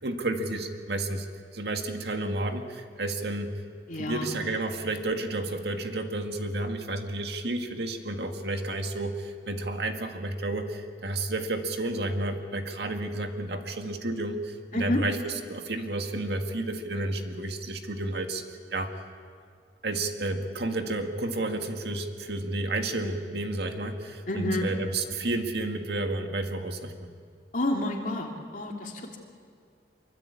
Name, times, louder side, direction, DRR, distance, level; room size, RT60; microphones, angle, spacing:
voice 1, 0.0-1.3 1.5-3.5 3.9-18.4 18.7-18.9 19.8-27.1, right 2 dB, 65° right, 5 dB, 2.0 m, -31 dB
voice 2, 3.9-4.3 14.7-15.0 24.3-24.7 27.5-29.2, left 1 dB, 45° left, 1 dB, 2.9 m, -29 dB
25.0 x 23.5 x 8.6 m, 2.2 s
head